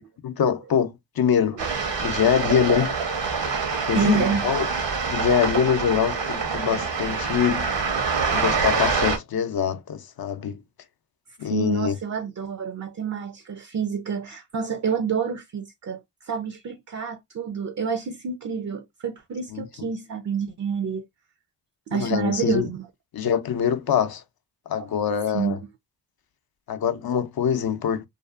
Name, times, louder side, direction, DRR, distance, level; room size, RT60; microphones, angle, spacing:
voice 1, 0.2-1.6 2.0-3.0 3.9-4.7 5.1-7.7 8.3-10.6 11.4-12.0 19.5-19.9 21.9-22.7 23.1-24.2 24.7-25.6 26.7-28.1, left 8 dB, 55° left, 0.6 m, -24 dB
sound 1, 1.6-9.2, right 5 dB, 75° right, 0.9 m, -26 dB
voice 2, 3.9-4.5 11.4-21.1 21.9-22.9 25.3-25.6, right 6 dB, 40° right, 0.5 m, -28 dB
2.6 x 2.3 x 2.3 m
cardioid pair, 40°, 43 cm